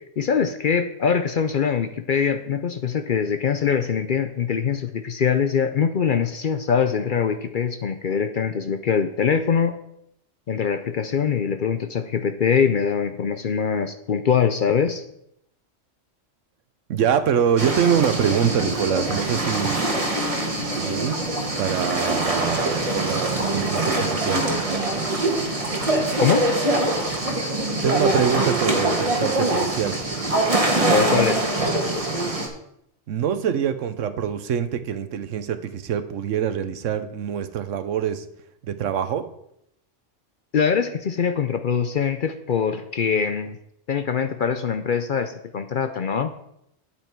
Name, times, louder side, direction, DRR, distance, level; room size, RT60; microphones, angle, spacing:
voice 1, 0.0-9.8 10.5-15.0 26.2-26.5 30.9-31.5 40.5-43.6 43.9-46.3, left 6 dB, 55° left, 8 dB, 0.6 m, -23 dB
voice 2, 16.9-20.0 20.8-21.2 21.6-24.5 27.8-30.0 33.1-38.3 38.7-39.3, right 8 dB, 80° right, 12 dB, 1.1 m, -24 dB
sound 1, 17.6-32.5, right 2 dB, 30° right, 1.5 m, -23 dB
9.0 x 8.3 x 4.5 m, 0.76 s
omnidirectional pair, 1.3 m